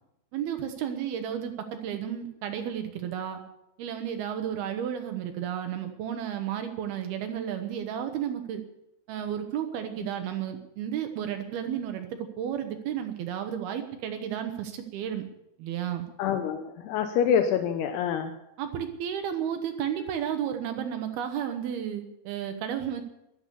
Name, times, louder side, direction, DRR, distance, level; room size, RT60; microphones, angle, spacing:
voice 1, 0.3-3.4 3.8-8.6 9.1-12.1 12.4-15.2 15.6-16.1 18.6-23.0, right 9 dB, 75° right, 6 dB, 2.4 m, -32 dB
voice 2, 16.2-18.4, left 8 dB, 80° left, 7 dB, 2.4 m, -26 dB
14.5 x 11.5 x 6.9 m, 0.87 s
omnidirectional pair, 5.5 m